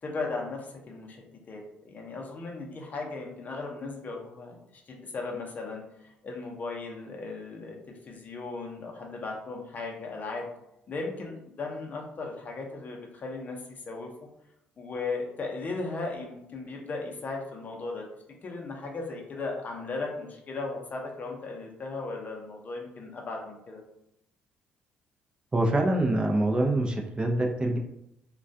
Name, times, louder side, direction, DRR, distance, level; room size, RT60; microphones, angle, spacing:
voice 1, 0.0-10.5 10.9-14.1 14.8-18.0 18.4-23.8, left 3 dB, 45° left, 0 dB, 0.6 m, -37 dB
voice 2, 25.5-27.8, right 1 dB, 25° right, 1 dB, 0.4 m, -25 dB
2.2 x 2.2 x 2.6 m, 0.82 s
supercardioid pair, 65°, 4 cm